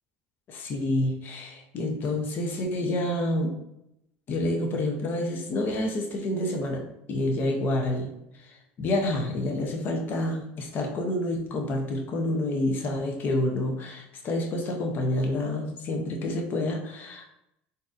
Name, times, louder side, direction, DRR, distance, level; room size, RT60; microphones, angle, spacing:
voice 1, 0.5-3.5 4.3-6.8 7.1-8.1 8.4-17.2, left 1 dB, 45° left, 2 dB, 0.7 m, -28 dB
3.8 x 2.7 x 2.5 m, 0.81 s
supercardioid pair, 105°, 5 cm